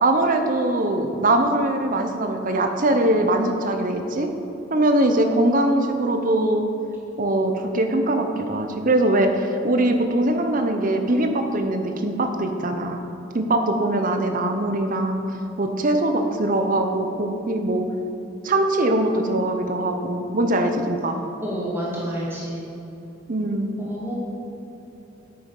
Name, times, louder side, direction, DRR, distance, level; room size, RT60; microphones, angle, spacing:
voice 1, 0.0-4.3 4.7-6.7 7.2-13.0 13.3-15.2 15.6-17.9 18.4-21.2 23.3-23.7, right 1 dB, 40° right, 5 dB, 0.7 m, -22 dB
voice 2, 21.4-22.6 23.8-24.2, equal, 10° right, -6 dB, 1.3 m, -29 dB
8.6 x 6.9 x 5.3 m, 2.9 s
head